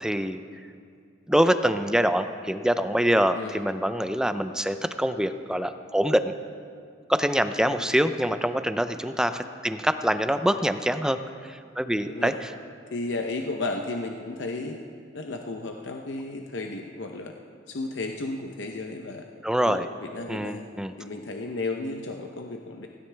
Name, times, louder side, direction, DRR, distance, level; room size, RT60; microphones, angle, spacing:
voice 1, 0.0-0.4 1.3-6.3 7.1-12.3 19.4-19.9 20.3-20.9, equal, 5° right, 10 dB, 0.5 m, -25 dB
voice 2, 12.9-14.8 15.1-17.3 17.7-19.3 19.6-20.6 21.0-22.9, left 2 dB, 90° left, 3 dB, 0.8 m, -33 dB
17.5 x 16.0 x 3.4 m, 2.2 s
head